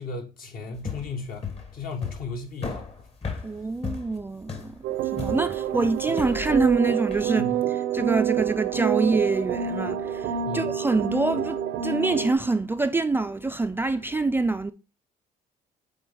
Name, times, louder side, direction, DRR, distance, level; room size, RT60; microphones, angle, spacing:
voice 1, 0.0-2.9 7.3-7.6 10.4-10.8, left 3 dB, 60° left, 1.7 m, -36 dB
sound 1, 0.7-7.3, left 5 dB, 35° left, 1.4 m, -36 dB
voice 2, 3.4-4.8 5.1-7.5 7.9-14.7, right 3 dB, 15° right, 0.3 m, -25 dB
sound 2, 4.8-12.3, right 9 dB, 90° right, 0.7 m, -27 dB
7.5 x 4.2 x 3.6 m
cardioid pair, 110°, 17 cm